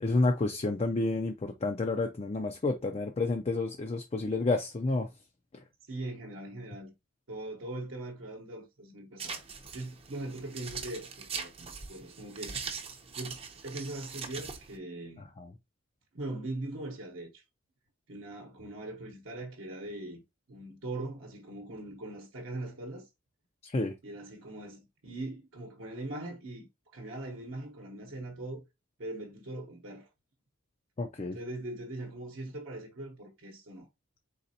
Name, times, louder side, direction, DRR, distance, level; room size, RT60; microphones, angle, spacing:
voice 1, 0.0-5.1 5.5-5.6 15.2-15.5 23.6-23.9 31.0-31.4, left 3 dB, 30° left, 0.4 m, -30 dB
voice 2, 5.9-6.9 7.3-9.4 9.7-12.8 13.1-13.4 13.6-15.3 16.1-17.4 18.1-20.2 20.5-23.1 24.0-26.7 26.9-28.6 29.0-30.1 31.3-33.9, right 2 dB, 65° right, 0.9 m, -41 dB
sound 1, 9.2-14.8, right 5 dB, 25° right, 0.6 m, -41 dB
4.1 x 4.0 x 2.7 m
head